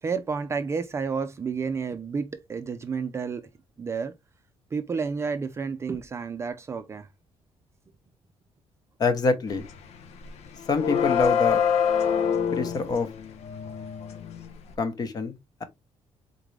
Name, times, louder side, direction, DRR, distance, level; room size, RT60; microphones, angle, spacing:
voice 1, 0.0-3.5 3.8-4.1 4.7-7.1, right 5 dB, 25° right, 0.4 m, -30 dB
voice 2, 9.0-9.7 10.7-11.6 12.5-13.1 14.8-15.6, left 4 dB, 35° left, 0.9 m, -26 dB
sound 1, 9.5-9.8 10.1-14.7, left 7 dB, 80° left, 0.8 m, -26 dB
4.0 x 3.7 x 3.2 m
cardioid pair, 165°, 11 cm